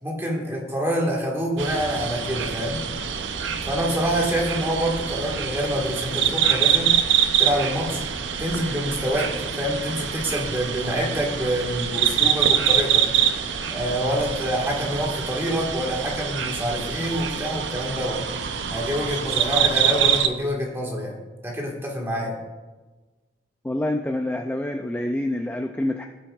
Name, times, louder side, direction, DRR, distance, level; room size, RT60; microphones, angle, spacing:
voice 1, 0.0-2.8 3.7-6.9 7.4-8.0 8.4-13.1 13.7-18.2 18.7-21.2 21.4-22.4, equal, 15° right, -2 dB, 1.6 m, -26 dB
sound 1, 1.6-20.3, right 8 dB, 75° right, 0.6 m, -25 dB
voice 2, 23.6-26.1, left 1 dB, 10° left, 4 dB, 0.3 m, -27 dB
16.5 x 7.5 x 2.4 m, 1.2 s
head